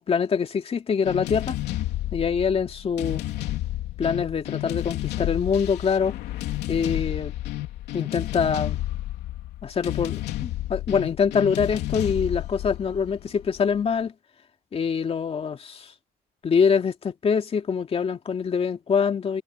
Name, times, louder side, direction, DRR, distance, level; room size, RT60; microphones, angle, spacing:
voice 1, 0.0-1.5 2.1-3.2 4.0-6.1 6.7-7.3 7.9-8.8 9.6-14.1 14.7-15.9 16.4-19.4, left 6 dB, 35° left, 2.4 m, -24 dB
sound 1, 1.0-13.8, left 15 dB, 80° left, 3.0 m, -31 dB
cardioid pair, 110°, 17 cm